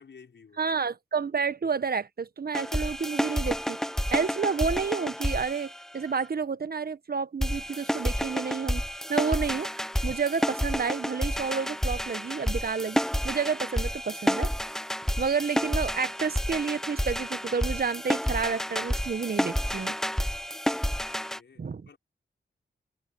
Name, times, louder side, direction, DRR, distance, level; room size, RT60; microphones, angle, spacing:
voice 1, 0.0-0.7 21.1-22.0, left 5 dB, 65° left, 6.2 m, -54 dB
voice 2, 0.6-3.8 4.1-8.8 9.1-14.5 15.2-20.0 21.6-21.8, right 5 dB, 50° right, 1.2 m, -30 dB
sound 1, 2.5-6.3 7.4-21.4, equal, ahead, 0.6 m, -30 dB
cardioid pair, 50°, 20 cm